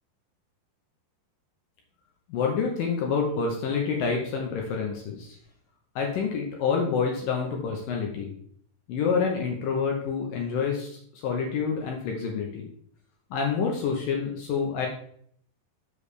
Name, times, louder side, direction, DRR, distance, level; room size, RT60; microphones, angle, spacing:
voice 1, 2.3-5.4 6.0-8.3 8.9-12.7 13.3-14.9, left 5 dB, 70° left, 1 dB, 2.3 m, -28 dB
7.0 x 7.0 x 3.3 m, 0.63 s
omnidirectional pair, 4.8 m